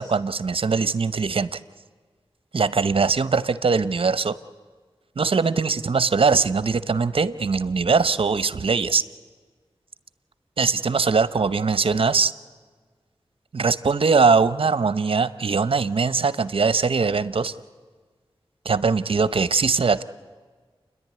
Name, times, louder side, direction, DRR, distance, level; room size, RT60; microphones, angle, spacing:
voice 1, 0.0-1.6 2.5-4.3 5.2-9.0 10.6-12.3 13.5-17.5 18.6-20.0, right 4 dB, 65° right, 14 dB, 0.8 m, -21 dB
29.5 x 11.0 x 9.5 m, 1.5 s
cardioid pair, 50°, 10 cm